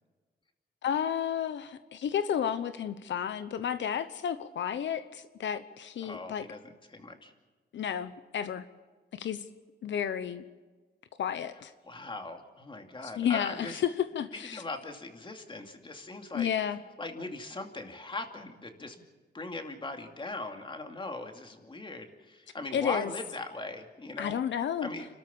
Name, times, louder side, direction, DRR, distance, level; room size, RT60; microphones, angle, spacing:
voice 1, 0.8-6.5 7.7-8.6 9.1-9.4 9.8-10.4 11.2-11.7 13.0-14.6 16.3-16.8 22.7-23.1 24.2-24.9, left 9 dB, 85° left, 11 dB, 0.9 m, -32 dB
voice 2, 6.0-6.6 6.9-7.3 11.8-13.8 14.5-16.5 17.0-19.0 19.3-24.4 24.8-25.1, left 2 dB, 25° left, 5 dB, 2.5 m, -40 dB
29.5 x 13.5 x 7.1 m, 1.4 s
wide cardioid pair, 125°, 19 cm